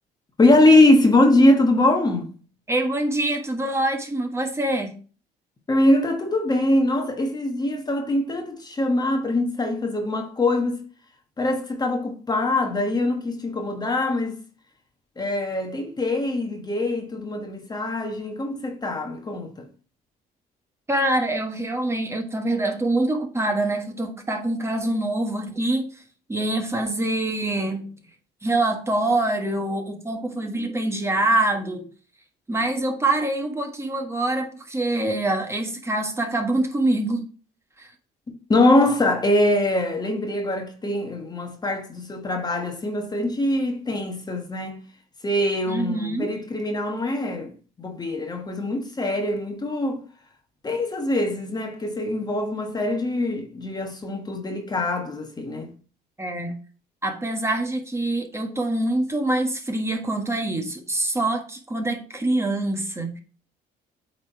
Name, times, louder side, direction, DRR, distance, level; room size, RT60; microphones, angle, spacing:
voice 1, 0.4-2.3 5.7-10.8 11.4-14.4 15.2-19.6 38.5-44.8 45.2-47.5 47.8-50.0 50.6-55.7, left 1 dB, 25° left, 1.3 m, -22 dB
voice 2, 2.7-4.9 20.9-26.0 26.3-27.9 28.4-31.8 32.5-37.2 37.8-37.9 45.7-46.3 56.2-56.5 57.0-63.2, right 2 dB, 15° right, 1.5 m, -25 dB
8.5 x 3.8 x 4.6 m
cardioid pair, 110°, 17 cm